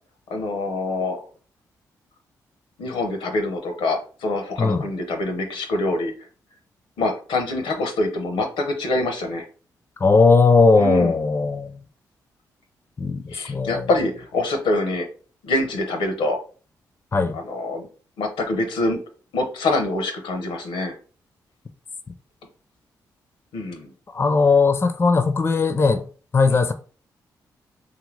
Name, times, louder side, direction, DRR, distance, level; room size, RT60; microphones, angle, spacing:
voice 1, 0.3-1.2 2.8-6.1 7.0-9.4 10.7-11.1 13.3-15.1 15.4-16.4 17.3-17.9 18.2-19.0 19.3-20.9 23.5-23.9, left 2 dB, 75° left, 0.6 m, -25 dB
voice 2, 10.0-11.8 13.0-13.9 17.1-17.4 24.1-26.0 26.3-26.7, left 4 dB, 30° left, 0.4 m, -18 dB
2.7 x 2.6 x 3.1 m
hypercardioid pair, 45°, 8 cm